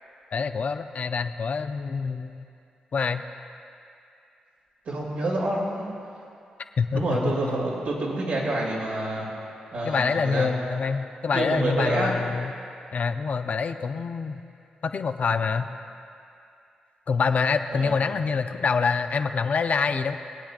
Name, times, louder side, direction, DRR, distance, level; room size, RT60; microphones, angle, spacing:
voice 1, 0.3-2.4 2.9-3.2 6.8-7.2 9.8-12.5 12.9-14.4 14.8-15.7 17.1-20.2, left 5 dB, 55° left, 8 dB, 0.6 m, -26 dB
voice 2, 4.9-5.9 6.9-9.3 9.7-10.5 11.3-12.2 17.7-17.9, right 2 dB, 75° right, -5 dB, 2.6 m, -27 dB
23.5 x 8.7 x 2.5 m, 2.5 s
supercardioid pair, 50°, 3 cm